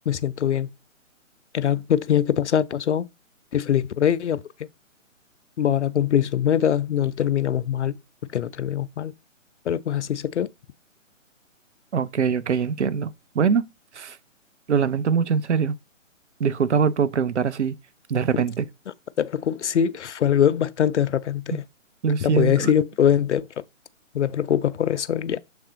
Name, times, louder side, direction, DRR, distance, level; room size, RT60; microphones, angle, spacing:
voice 1, 0.1-0.7 1.5-3.1 3.5-4.7 5.6-7.9 8.3-9.1 9.7-10.5 19.2-21.6 22.2-23.6 24.1-25.4, left 9 dB, 60° left, 0.6 m, -23 dB
voice 2, 11.9-13.6 13.9-14.2 14.7-15.8 16.4-17.8 18.1-18.7 22.0-22.7, right 6 dB, 60° right, 0.7 m, -23 dB
7.0 x 3.5 x 3.9 m
figure-of-eight pair, 140°, 39 cm